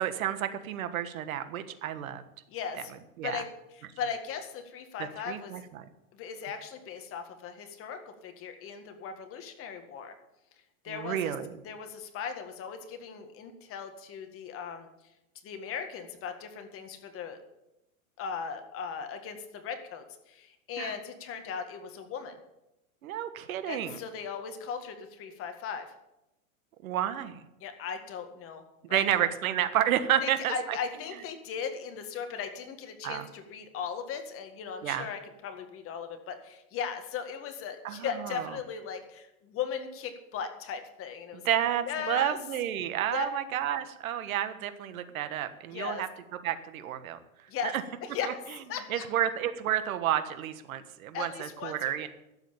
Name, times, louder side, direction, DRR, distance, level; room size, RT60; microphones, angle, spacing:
voice 1, 0.0-2.2 3.2-3.4 5.3-5.9 10.9-11.6 20.8-20.9 23.0-24.0 26.8-27.4 28.9-30.8 33.0-33.3 34.8-35.1 37.8-38.5 41.4-46.1 46.4-47.2 47.7-47.8 48.9-52.1, right 11 dB, 70° right, 11 dB, 1.5 m, -30 dB
voice 2, 2.5-2.9 3.2-3.5 4.0-5.5 6.1-10.1 10.8-11.3 11.6-14.9 15.4-17.4 18.2-22.3 23.7-25.9 27.6-28.6 28.9-29.0 30.2-41.6 41.9-42.4 43.1-43.4 45.7-46.0 47.5-47.7 48.0-48.4 48.7-49.1 51.1-52.1, left 6 dB, 30° left, 6 dB, 1.9 m, -38 dB
12.5 x 8.1 x 8.9 m, 0.91 s
hypercardioid pair, 135°, 43 cm